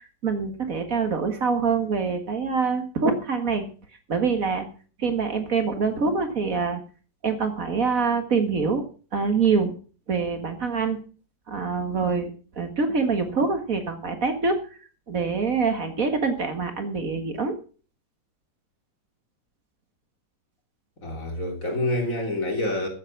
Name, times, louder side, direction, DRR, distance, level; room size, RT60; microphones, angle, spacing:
voice 1, 0.2-3.6 4.1-4.7 5.0-6.8 7.2-8.8 9.1-9.7 10.1-11.0 11.5-12.3 12.6-14.5 15.1-17.6, right 5 dB, 55° right, 2.1 m, -25 dB
voice 2, 21.0-22.9, left 1 dB, 50° left, 3.7 m, -27 dB
14.5 x 8.0 x 5.9 m
omnidirectional pair, 1.8 m